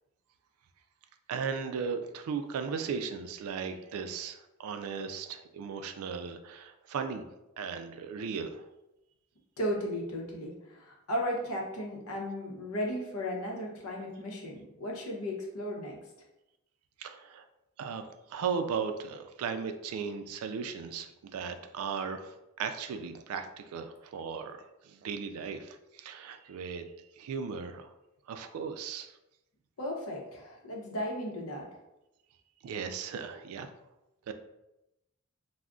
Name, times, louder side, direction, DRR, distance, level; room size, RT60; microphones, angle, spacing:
voice 1, 1.3-7.2 7.6-8.7 17.0-17.4 17.8-18.0 18.3-24.6 24.8-26.8 27.2-27.9 28.3-29.1 32.6-33.7 34.3-34.4, right 6 dB, 90° right, 9 dB, 0.3 m, -36 dB
voice 2, 9.6-16.0 29.8-31.7, equal, 90° left, 0 dB, 0.7 m, -35 dB
2.3 x 2.0 x 3.6 m, 0.92 s
head